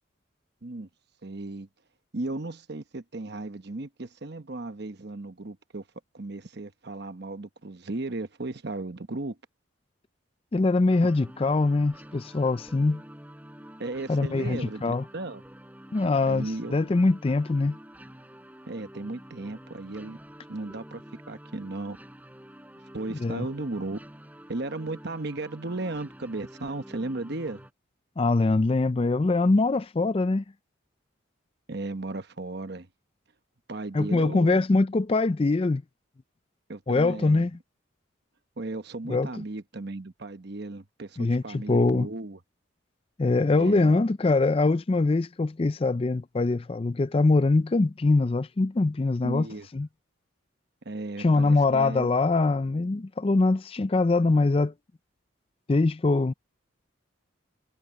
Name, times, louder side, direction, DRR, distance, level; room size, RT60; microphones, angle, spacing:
voice 1, 1.2-1.7 2.1-5.8 6.1-9.4 13.8-15.4 16.3-16.8 18.7-20.2 20.5-22.0 22.9-24.0 24.5-27.6 31.7-32.9 33.7-34.6 36.7-37.5 38.6-42.4 43.5-44.0 49.2-49.7 50.8-52.1, right 2 dB, 55° right, 1.0 m, -35 dB
voice 2, 10.5-13.0 14.1-15.0 15.9-17.8 23.2-23.5 28.2-30.4 33.9-35.8 36.9-37.5 39.1-39.3 41.2-42.1 43.2-49.5 49.7-49.9 51.2-54.7 55.7-56.3, left 3 dB, 25° left, 0.4 m, -23 dB
sound 1, 10.9-27.7, equal, 10° right, 6.8 m, -48 dB
head